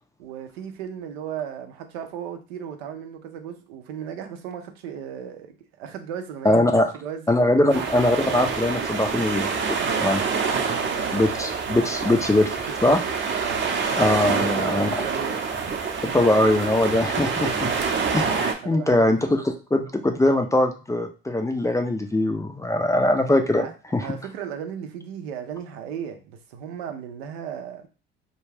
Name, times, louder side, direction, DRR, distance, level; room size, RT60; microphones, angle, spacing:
voice 1, 0.2-5.5 5.8-7.8 9.8-11.5 11.9-12.3 12.8-13.0 13.4-13.7 14.2-15.4 18.6-19.4 23.6-23.7 24.0-27.9, right 8 dB, 80° right, 6 dB, 0.6 m, -36 dB
voice 2, 6.4-6.9 7.3-10.2 11.1-12.5 12.8-13.0 14.0-14.9 16.1-17.7 18.1-24.1, left 1 dB, 10° left, 5 dB, 0.4 m, -21 dB
sound 1, 7.7-18.5, right 5 dB, 40° right, 0.7 m, -26 dB
2.3 x 2.2 x 3.3 m, 0.33 s
hypercardioid pair, 65°, 31 cm